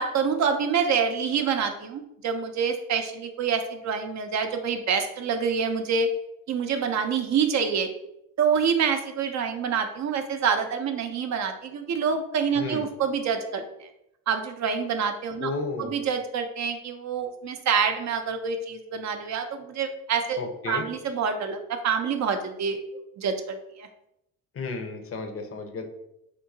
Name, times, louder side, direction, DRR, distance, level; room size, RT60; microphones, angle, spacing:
voice 1, 0.0-6.1 6.5-7.9 8.4-13.9 14.3-15.5 15.8-20.4 20.7-22.8 23.2-23.9, right 6 dB, 50° right, 6 dB, 0.5 m, -26 dB
voice 2, 12.6-12.9 15.4-15.9 20.4-20.8 24.5-25.9, left 3 dB, 40° left, 5 dB, 0.6 m, -32 dB
3.6 x 2.7 x 2.7 m, 0.82 s
supercardioid pair, 80°, 35 cm